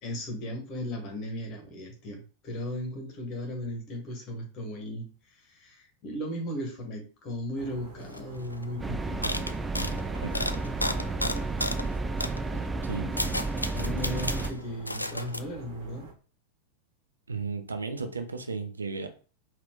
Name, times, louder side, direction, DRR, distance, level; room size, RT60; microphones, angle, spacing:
voice 1, 0.0-9.3 13.7-16.1, equal, 35° left, 2 dB, 1.7 m, -36 dB
sound 1, 7.5-16.1, right 3 dB, 45° right, 1.4 m, -46 dB
sound 2, 8.1-8.2 8.4-8.7 9.2-11.9 12.2-12.4 12.9-14.5 14.9-15.4, left 1 dB, 85° left, 0.3 m, -33 dB
sound 3, 8.8-14.5, right 3 dB, 10° right, 0.3 m, -32 dB
voice 2, 12.5-13.3 17.3-19.1, right 4 dB, 75° right, 6 dB, 0.7 m, -35 dB
4.8 x 2.8 x 3.7 m, 0.37 s
figure-of-eight pair, 90°, 0 cm